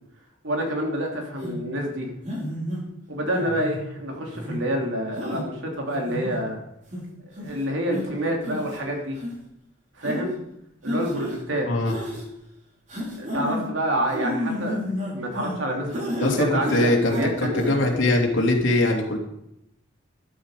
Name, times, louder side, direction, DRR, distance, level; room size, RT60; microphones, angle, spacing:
voice 1, 0.4-2.1 3.1-6.6 7.4-9.2 9.9-10.4 10.8-12.0 13.2-18.0, right 1 dB, 70° right, 1 dB, 3.2 m, -28 dB
sound 1, 1.4-1.6 2.2-2.8 3.3-3.8 4.3-4.6 5.2-5.4 5.9-6.4 6.9-7.0 7.4-7.6 7.9-8.0 8.4-8.8 9.2-9.3 10.0-10.2 10.9-11.4 11.9-12.2 12.9-13.6 14.1-15.6 15.9-16.3 16.6-17.3 17.5-17.7, left 1 dB, 40° right, 5.1 m, -31 dB
voice 2, 11.7-12.0 16.2-19.2, left 2 dB, 70° left, 1 dB, 3.0 m, -22 dB
13.5 x 12.0 x 5.0 m, 0.81 s
head